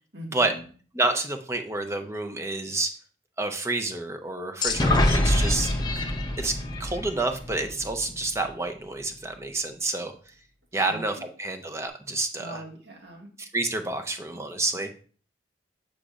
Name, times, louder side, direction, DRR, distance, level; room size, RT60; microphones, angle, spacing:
voice 1, 0.1-0.6 10.7-11.0 12.4-13.3 14.0-14.1, equal, 65° right, -1 dB, 1.9 m, -42 dB
voice 2, 0.9-2.9 3.4-5.7 6.4-10.1 10.7-12.6 13.4-14.9, right 2 dB, 15° right, 5 dB, 0.6 m, -29 dB
sound 1, 4.6-8.3, left 1 dB, 25° left, 0.7 m, -25 dB
8.4 x 5.0 x 2.5 m, 0.42 s
head